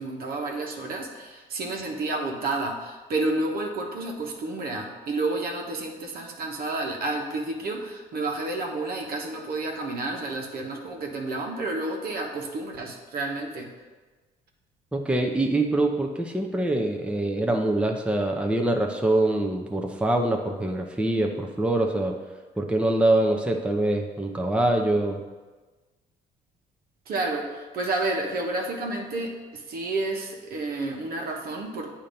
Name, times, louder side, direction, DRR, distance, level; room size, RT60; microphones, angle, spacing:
voice 1, 0.0-13.7 27.1-31.9, right 2 dB, 65° right, 1 dB, 1.1 m, -30 dB
voice 2, 14.9-22.2 22.6-25.2, right 1 dB, 5° right, 2 dB, 0.7 m, -24 dB
8.5 x 2.8 x 5.3 m, 1.3 s
supercardioid pair, 75°, 17 cm